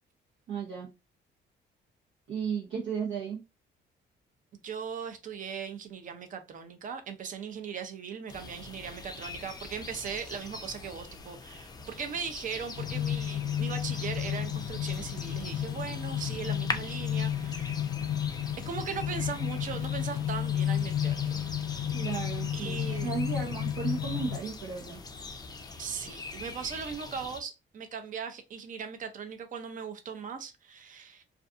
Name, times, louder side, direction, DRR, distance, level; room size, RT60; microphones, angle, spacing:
voice 1, 0.5-0.9 2.3-3.4 21.9-25.0, right 6 dB, 80° right, 0.8 m, -34 dB
voice 2, 4.6-17.8 18.6-21.4 22.5-23.1 25.8-31.2, right 6 dB, 45° right, 0.6 m, -39 dB
sound 1, 8.3-27.4, left 3 dB, 20° left, 0.4 m, -43 dB
sound 2, 12.8-24.4, left 10 dB, 85° left, 0.4 m, -32 dB
2.5 x 2.4 x 2.4 m
cardioid pair, 115°, 19 cm